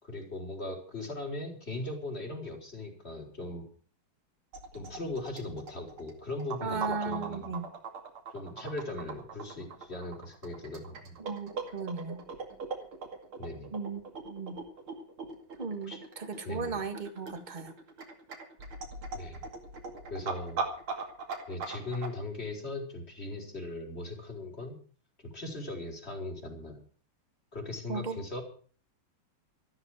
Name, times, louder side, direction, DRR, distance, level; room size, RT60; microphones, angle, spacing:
voice 1, 0.0-3.7 4.7-7.5 8.3-11.2 13.4-13.7 15.8-16.0 16.4-16.8 19.1-19.4 20.1-20.6 21.5-24.8 25.2-26.8 27.5-28.4, left 2 dB, 30° left, 1 dB, 4.4 m, -39 dB
sound 1, 4.5-22.1, right 4 dB, 75° right, 3.2 m, -40 dB
voice 2, 6.6-7.7 11.2-12.2 13.7-14.6 15.6-17.7 27.9-28.2, right 4 dB, 25° right, 8 dB, 1.7 m, -36 dB
13.5 x 13.0 x 6.3 m, 0.43 s
omnidirectional pair, 2.3 m